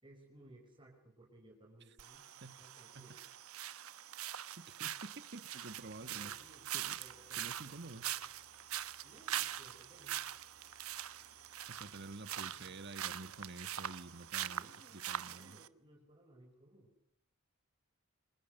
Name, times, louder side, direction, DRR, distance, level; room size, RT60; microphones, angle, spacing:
voice 1, 0.0-2.3 2.6-3.1 6.0-6.7 7.0-8.1 9.0-10.2 14.4-16.9, right 1 dB, 25° right, 0 dB, 5.9 m, -61 dB
sound 1, 2.0-15.7, right 11 dB, 85° right, 1.2 m, -43 dB
voice 2, 4.7-6.3 6.7-7.0 7.4-8.1 11.2-11.3 11.7-15.6, right 2 dB, 50° right, 12 dB, 1.7 m, -50 dB
sound 2, 5.7-14.5, left 2 dB, 50° left, 3.6 m, -69 dB
28.0 x 27.0 x 6.7 m, 0.72 s
head